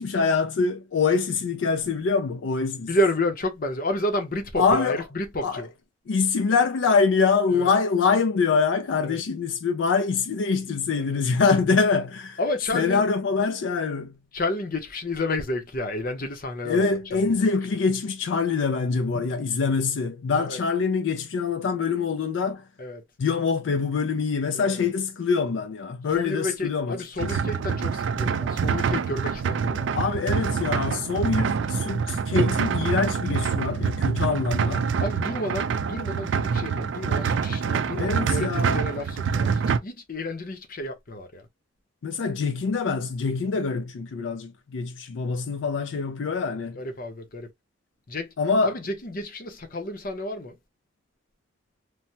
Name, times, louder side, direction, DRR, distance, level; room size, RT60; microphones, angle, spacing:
voice 1, 0.0-2.9 4.6-5.0 5.4-5.7 6.1-12.4 12.7-14.2 16.7-22.7 23.2-27.4 29.9-34.9 38.0-38.8 42.0-46.8 48.4-48.7, left 5 dB, 80° left, 0.4 m, -24 dB
voice 2, 2.9-5.7 7.5-7.7 9.0-9.2 11.0-11.2 12.4-13.1 14.3-17.3 20.5-20.6 22.8-23.0 24.5-24.9 26.1-29.9 35.0-41.4 46.8-47.5 48.1-48.3 48.6-50.6, left 1 dB, 50° left, 0.7 m, -30 dB
sound 1, 27.2-39.8, right 6 dB, 75° right, 0.4 m, -26 dB
3.3 x 2.1 x 2.7 m
head